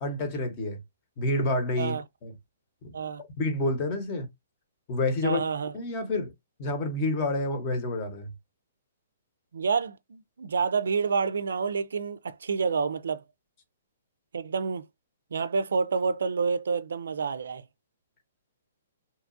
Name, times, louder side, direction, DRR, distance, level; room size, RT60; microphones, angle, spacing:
voice 1, 0.0-0.8 1.2-2.0 2.2-2.3 2.8-2.9 3.4-4.3 4.9-5.4 5.7-6.3 6.6-8.3, left 2 dB, 35° left, 0.9 m, -28 dB
voice 2, 5.2-5.7 9.5-13.2 14.3-14.9 15.3-17.7, right 5 dB, 80° right, 0.3 m, -28 dB
2.8 x 2.3 x 2.5 m
hypercardioid pair, 145°, 0 cm